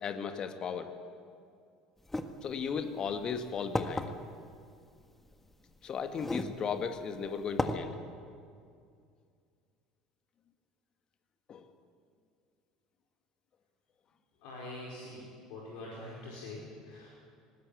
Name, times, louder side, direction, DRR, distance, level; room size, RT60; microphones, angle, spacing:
voice 1, 0.0-0.9 2.4-4.1 5.8-8.0 11.5-11.7, left 6 dB, 35° left, 8 dB, 1.9 m, -36 dB
sound 1, 2.1-2.3 3.1-3.2 3.8-4.1 5.3-5.4 6.1-6.5 7.0-7.1 7.6-7.8, left 2 dB, 10° left, 1.6 m, -32 dB
voice 2, 14.4-15.2 15.5-17.1, left 2 dB, 60° left, -4 dB, 4.9 m, -44 dB
20.0 x 19.5 x 8.6 m, 2.3 s
figure-of-eight pair, 65°, 2 cm